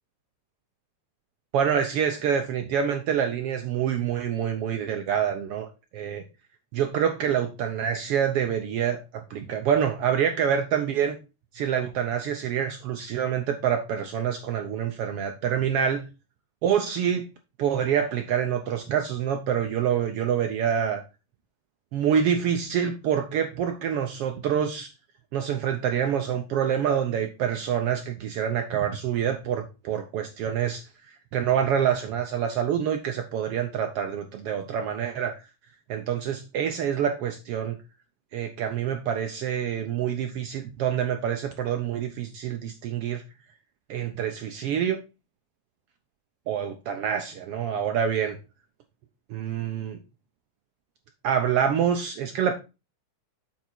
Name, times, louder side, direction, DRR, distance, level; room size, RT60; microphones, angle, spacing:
voice 1, 1.5-5.7 5.9-6.2 6.7-9.0 9.3-11.2 11.5-16.0 16.6-17.2 17.6-21.0 21.9-24.9 25.3-35.4 35.9-37.8 38.3-43.2 43.9-45.0 46.5-48.4 49.3-50.0 51.2-52.5, right 8 dB, 80° right, 6 dB, 1.3 m, -26 dB
8.4 x 4.5 x 4.4 m, 0.29 s
omnidirectional pair, 3.5 m